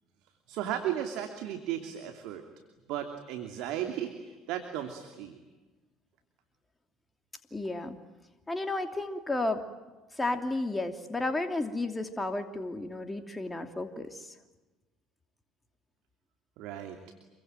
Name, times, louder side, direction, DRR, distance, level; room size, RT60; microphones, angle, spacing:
voice 1, 0.5-2.4 2.9-5.4 16.6-17.0, right 10 dB, 65° right, 6 dB, 2.8 m, -35 dB
voice 2, 7.5-8.0 8.5-9.6 10.1-14.3, left 2 dB, 15° left, 7 dB, 2.8 m, -32 dB
27.5 x 24.0 x 9.2 m, 1.2 s
hypercardioid pair, 65°, 0 cm